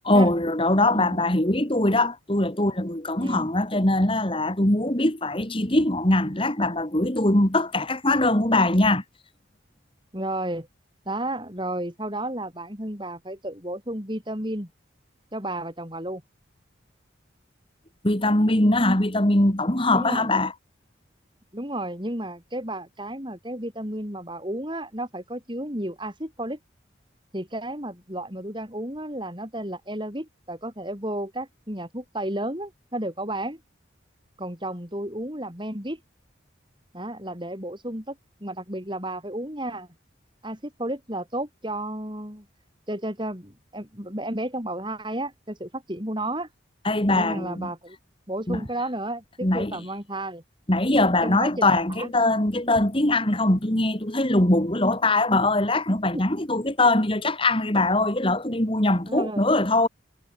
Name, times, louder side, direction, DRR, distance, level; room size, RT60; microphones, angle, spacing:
voice 1, 0.1-9.0 18.0-20.5 46.8-47.7 48.5-48.6 49.4-49.8 50.7-59.9, left 2 dB, 25° left, 2.3 m, -22 dB
voice 2, 0.9-1.2 3.2-3.4 10.1-10.7 11.1-14.7 15.3-16.2 19.9-20.3 21.5-26.6 27.3-33.6 34.4-36.0 36.9-39.9 40.4-42.4 42.9-46.5 47.1-48.0 48.3-50.4 51.2-52.1 56.1-56.2 59.1-59.4, right 1 dB, 25° right, 6.7 m, -32 dB
head